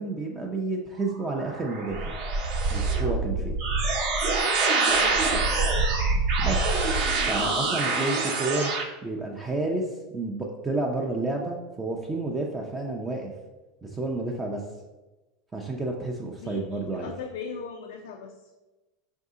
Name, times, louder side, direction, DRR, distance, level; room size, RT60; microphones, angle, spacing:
voice 1, 0.0-2.2 2.7-3.6 6.4-6.6 7.3-8.7 9.0-13.3 13.8-14.6 15.5-17.1, right 2 dB, 15° right, 0 dB, 0.4 m, -30 dB
sound 1, 1.1-8.8, right 3 dB, 50° right, 0.7 m, -25 dB
voice 2, 4.9-5.8 16.4-18.3, left 6 dB, 85° left, 2 dB, 0.4 m, -39 dB
4.7 x 2.7 x 3.6 m, 1.1 s
supercardioid pair, 135°, 0 cm